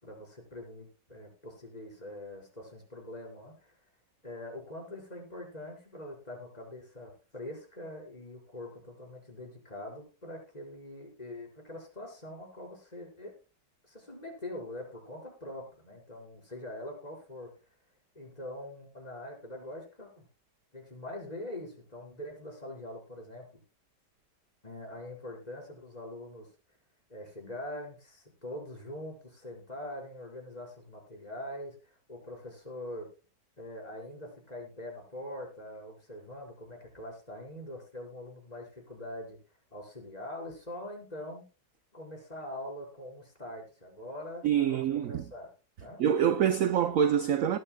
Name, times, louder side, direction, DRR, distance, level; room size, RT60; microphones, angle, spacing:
voice 1, 0.0-3.8 4.2-13.4 13.9-17.5 18.2-20.2 20.7-23.5 24.6-26.5 27.1-33.1 33.6-39.4 39.7-41.4 41.9-45.5 45.8-46.0, left 1 dB, 20° left, 5.2 m, -43 dB
voice 2, 44.4-45.2 46.0-47.6, right 9 dB, 60° right, 1.0 m, -25 dB
19.5 x 11.5 x 2.3 m
omnidirectional pair, 1.9 m